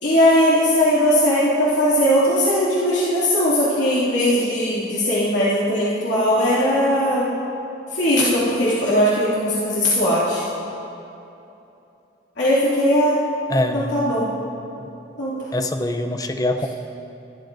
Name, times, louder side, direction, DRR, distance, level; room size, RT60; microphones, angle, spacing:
voice 1, 0.0-7.3 7.9-10.4 12.4-13.2 13.7-14.3 15.2-15.4, equal, 75° left, -10 dB, 2.7 m, -19 dB
voice 2, 13.5-14.2 14.8-14.9 15.5-16.7, left 1 dB, 20° left, 6 dB, 0.6 m, -24 dB
23.5 x 12.5 x 2.7 m, 2.9 s
head